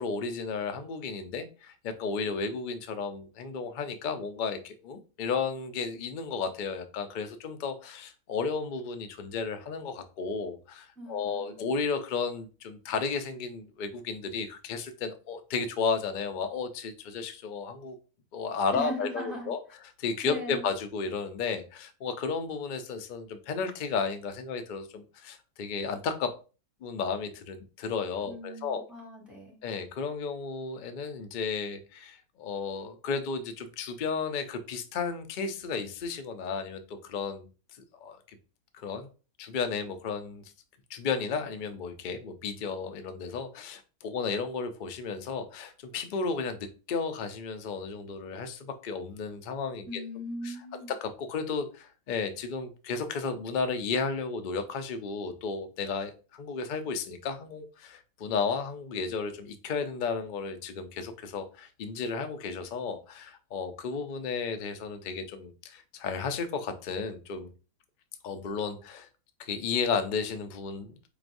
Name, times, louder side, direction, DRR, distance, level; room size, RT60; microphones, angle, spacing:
voice 1, 0.0-18.0 18.3-19.6 20.0-26.3 26.8-28.8 29.6-37.5 37.9-38.2 38.7-39.1 39.4-40.4 40.9-50.0 50.4-50.5 51.0-67.5 68.2-69.1 69.4-71.0, left 5 dB, 85° left, 8 dB, 0.4 m, -33 dB
voice 2, 11.0-11.7 18.7-19.5 20.2-20.6 28.2-29.6 49.9-50.9, equal, ahead, -4 dB, 2.1 m, -39 dB
4.8 x 3.0 x 2.5 m, 0.35 s
omnidirectional pair, 1.6 m